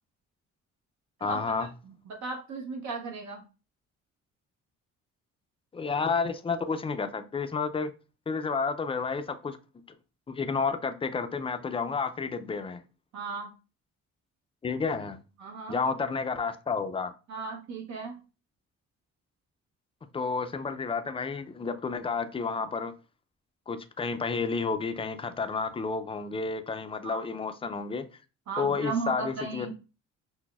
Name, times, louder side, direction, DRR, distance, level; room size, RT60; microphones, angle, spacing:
voice 1, 1.2-1.7 5.7-7.9 8.3-9.6 10.3-12.8 14.6-15.2 15.7-17.1 20.1-22.9 23.7-28.1 28.6-29.7, left 4 dB, 20° left, 0.3 m, -31 dB
voice 2, 1.8-3.4 13.1-13.5 15.4-15.8 17.3-18.2 27.0-27.2 28.5-29.7, right 4 dB, 70° right, 0.9 m, -36 dB
5.9 x 2.0 x 2.3 m
cardioid pair, 90°, 30 cm